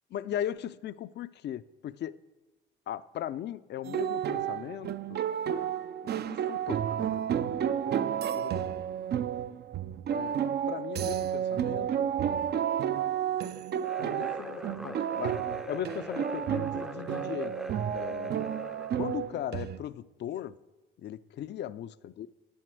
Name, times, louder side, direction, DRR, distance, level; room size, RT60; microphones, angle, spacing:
voice 1, 0.1-2.2 2.9-5.2 6.0-7.6 7.9-8.7 10.1-10.4 10.7-12.1 14.0-15.4 15.7-17.5 17.9-18.5 19.0-20.6 21.0-22.3, left 11 dB, 60° left, 0.5 m, -38 dB
sound 1, 3.8-19.8, right 9 dB, 55° right, 0.5 m, -31 dB
sound 2, 13.8-19.3, right 1 dB, ahead, 0.5 m, -41 dB
8.8 x 7.9 x 7.6 m
cardioid pair, 90°, 20 cm